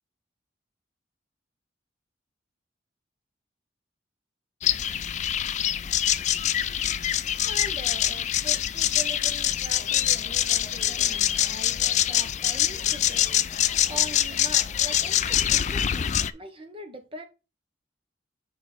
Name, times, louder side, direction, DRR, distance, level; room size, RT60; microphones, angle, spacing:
sound 1, 4.6-16.3, left 11 dB, 40° left, 0.4 m, -25 dB
voice 1, 7.4-17.3, right 1 dB, 30° right, 1.1 m, -42 dB
sound 2, 9.8-15.8, equal, 15° left, 1.3 m, -51 dB
6.0 x 4.8 x 4.4 m
head